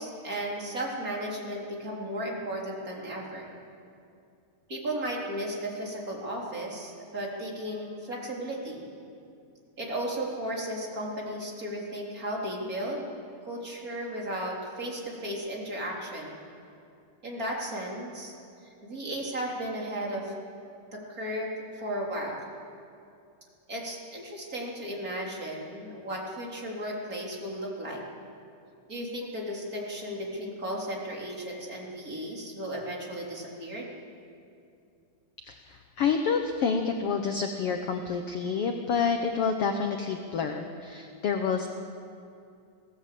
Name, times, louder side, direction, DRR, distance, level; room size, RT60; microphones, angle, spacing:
voice 1, 0.0-3.5 4.7-8.8 9.8-13.1 13.4-16.4 17.2-18.3 18.8-20.3 20.9-22.5 23.7-28.0 28.9-33.9, right 1 dB, 25° right, -2 dB, 3.7 m, -35 dB
voice 2, 35.4-41.7, left 6 dB, 75° left, 5 dB, 1.3 m, -28 dB
21.0 x 16.5 x 8.5 m, 2.4 s
omnidirectional pair, 4.1 m